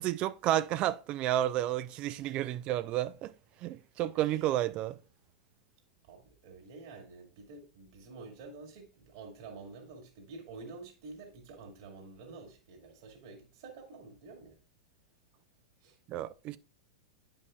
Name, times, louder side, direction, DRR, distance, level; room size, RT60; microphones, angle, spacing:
voice 1, 0.0-3.3 3.6-5.0 16.1-16.6, right 13 dB, 40° right, 0.4 m, -31 dB
voice 2, 2.2-2.6 4.1-4.5 6.0-14.6 15.8-16.0, right 3 dB, 55° right, 2.1 m, -49 dB
9.4 x 5.3 x 2.3 m
figure-of-eight pair, 95°, 3 cm